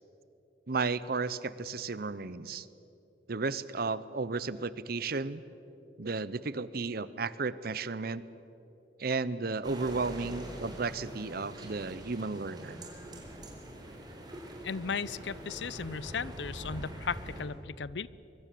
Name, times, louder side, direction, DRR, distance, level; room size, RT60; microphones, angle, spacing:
voice 1, 0.7-2.7 3.3-5.4 6.0-8.2 9.0-12.8, right 4 dB, 60° right, 17 dB, 0.8 m, -33 dB
sound 1, 9.6-17.4, right 1 dB, 25° right, 3.8 m, -44 dB
voice 2, 14.6-18.1, left 5 dB, 90° left, 20 dB, 0.6 m, -36 dB
24.0 x 22.5 x 7.7 m, 3.0 s
head